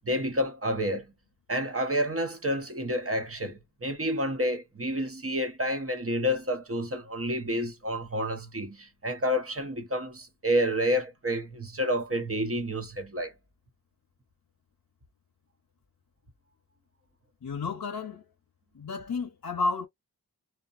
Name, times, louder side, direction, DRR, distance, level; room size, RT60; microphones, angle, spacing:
voice 1, 0.0-1.1 1.5-13.3, equal, 35° right, 0.9 m, -29 dB
voice 2, 17.4-18.2 18.7-19.9, left 4 dB, 65° left, 0.6 m, -31 dB
2.8 x 2.2 x 2.3 m
wide cardioid pair, 50°, 39 cm